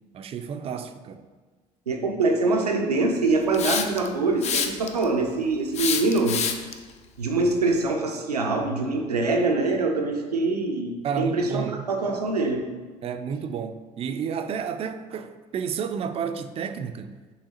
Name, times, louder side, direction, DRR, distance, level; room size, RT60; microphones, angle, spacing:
voice 1, 0.1-1.3 11.0-11.9 13.0-17.2, right 7 dB, 30° right, 0.4 m, -31 dB
voice 2, 1.9-6.4 7.2-12.7, right 3 dB, 85° right, 0.5 m, -24 dB
Hiss, 3.5-4.1 4.4-5.0 5.7-6.7, left 7 dB, 35° left, 0.5 m, -26 dB
5.6 x 3.3 x 2.9 m
figure-of-eight pair, 60°, 20 cm